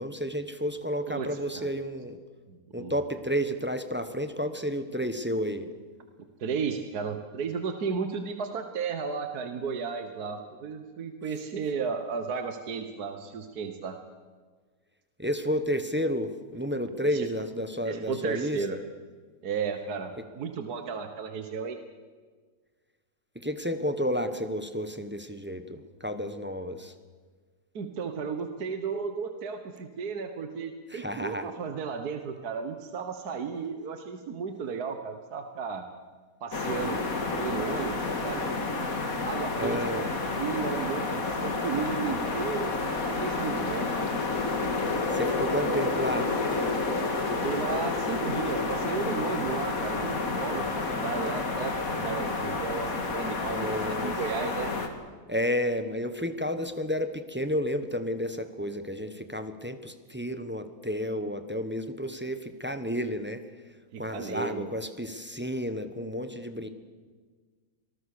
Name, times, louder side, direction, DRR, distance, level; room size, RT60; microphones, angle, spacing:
voice 1, 0.0-2.2 2.7-5.7 15.2-18.8 23.3-26.9 30.9-31.5 39.6-40.1 45.1-46.3 53.5-54.2 55.3-63.4 64.0-66.7, equal, 5° right, 9 dB, 1.1 m, -31 dB
voice 2, 2.5-2.9 6.4-14.0 17.1-17.3 17.9-18.8 19.4-21.8 27.8-35.8 36.4-37.0 37.4-38.4 39.3-40.1 40.4-42.7 43.1-44.0 47.3-54.7 63.9-64.7, right 5 dB, 65° right, 7 dB, 1.8 m, -34 dB
Light Wind, 36.5-54.9, left 3 dB, 55° left, 2.4 m, -30 dB
26.0 x 20.0 x 6.7 m, 1.5 s
omnidirectional pair, 1.8 m